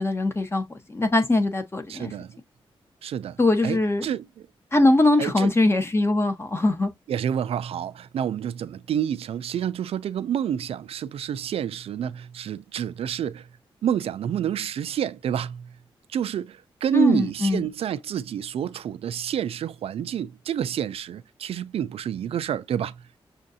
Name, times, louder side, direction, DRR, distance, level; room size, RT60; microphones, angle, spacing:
voice 1, 0.0-2.1 3.4-4.1 4.7-6.9 16.9-17.7, left 2 dB, 25° left, 1.0 m, -22 dB
voice 2, 1.9-2.3 3.0-3.4 3.6-4.3 5.2-5.5 7.1-13.5 13.8-15.7 16.1-23.2, right 9 dB, 80° right, 0.4 m, -28 dB
6.3 x 2.5 x 2.7 m
cardioid pair, 90°, 10 cm